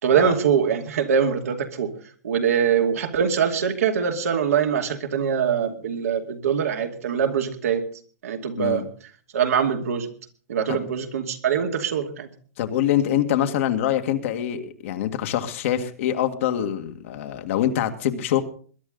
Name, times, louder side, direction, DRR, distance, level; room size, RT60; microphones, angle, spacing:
voice 1, 0.0-1.9 2.2-7.8 8.2-8.9 9.3-10.1 10.5-12.3, right 7 dB, 75° right, 3 dB, 2.5 m, -23 dB
voice 2, 12.6-18.4, left 11 dB, 55° left, 6 dB, 1.9 m, -24 dB
21.5 x 11.0 x 3.9 m, 0.43 s
hypercardioid pair, 125°, 8 cm